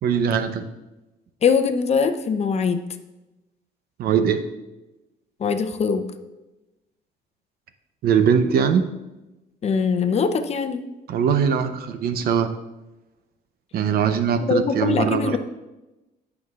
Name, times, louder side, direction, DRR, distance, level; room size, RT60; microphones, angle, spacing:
voice 1, 0.0-0.6 4.0-4.4 8.0-8.9 11.1-12.5 13.7-15.4, right 7 dB, 65° right, 9 dB, 0.8 m, -21 dB
voice 2, 1.4-2.8 5.4-6.0 9.6-10.8 14.5-15.4, left 5 dB, 40° left, 8 dB, 0.7 m, -22 dB
15.0 x 6.0 x 2.5 m, 1.0 s
cardioid pair, 110°, 17 cm